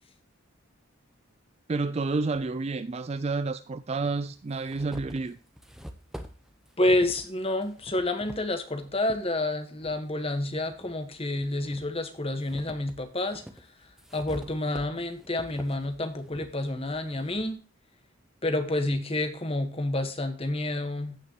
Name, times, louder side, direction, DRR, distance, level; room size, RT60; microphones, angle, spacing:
voice 1, 1.7-5.4, right 3 dB, 30° right, 0.3 m, -30 dB
sound 1, 4.1-9.2 9.8-10.9 11.4-17.5, equal, ahead, 0.8 m, -46 dB
voice 2, 6.8-13.4 14.1-17.6 18.4-21.2, left 1 dB, 25° left, 1.3 m, -29 dB
15.5 x 6.0 x 3.0 m
head